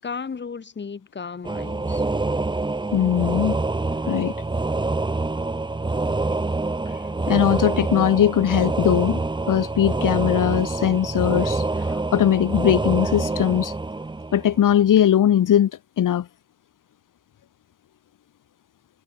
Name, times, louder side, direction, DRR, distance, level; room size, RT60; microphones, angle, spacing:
voice 1, 0.0-2.0, left 5 dB, 25° left, 7.3 m, -34 dB
sound 1, 1.4-14.9, right 3 dB, 10° right, 1.8 m, -26 dB
voice 2, 2.9-3.6 4.1-4.3 6.9-13.8 14.3-15.7 16.0-16.3, left 10 dB, 50° left, 2.9 m, -20 dB
cardioid pair, 165°, 41 cm